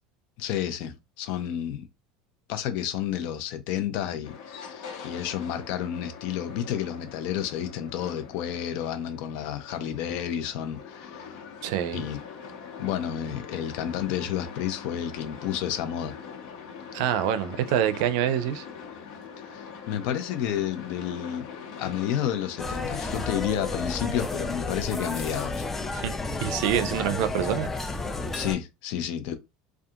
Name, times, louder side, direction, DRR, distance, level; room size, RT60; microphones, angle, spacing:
voice 1, 0.4-1.9 2.5-11.4 11.9-12.2 12.8-16.1 19.5-21.5 21.8-25.6 28.2-29.4, left 10 dB, 60° left, 0.6 m, -31 dB
sound 1, 4.2-23.9, left 6 dB, 80° left, 1.0 m, -43 dB
voice 2, 11.6-12.0 16.9-18.6 26.0-27.7, right 10 dB, 65° right, 0.4 m, -26 dB
sound 2, 22.6-28.6, left 3 dB, 10° left, 0.4 m, -32 dB
2.7 x 2.3 x 2.4 m
supercardioid pair, 145°, 3 cm